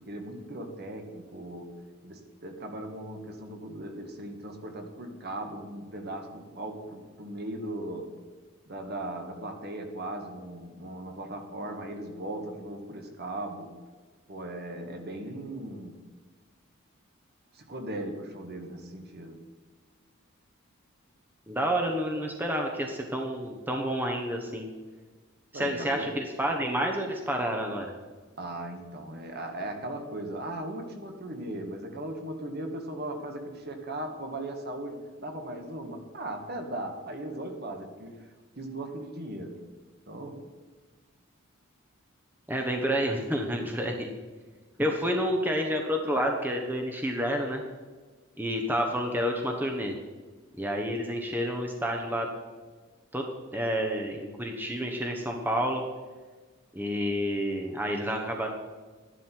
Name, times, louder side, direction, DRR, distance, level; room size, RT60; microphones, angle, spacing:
voice 1, 0.0-1.7 2.0-8.1 8.7-13.7 14.3-16.0 17.5-19.4 25.5-26.3 28.4-38.3 38.6-39.6 40.1-40.4 45.2-45.3, right 1 dB, 50° right, 4 dB, 1.7 m, -38 dB
voice 2, 21.5-24.7 25.5-27.9 42.5-44.1 44.8-47.6 48.4-50.0 50.5-52.3 53.1-53.2 53.5-55.8 56.7-58.5, equal, 10° right, 2 dB, 1.0 m, -29 dB
13.0 x 11.0 x 4.6 m, 1.4 s
head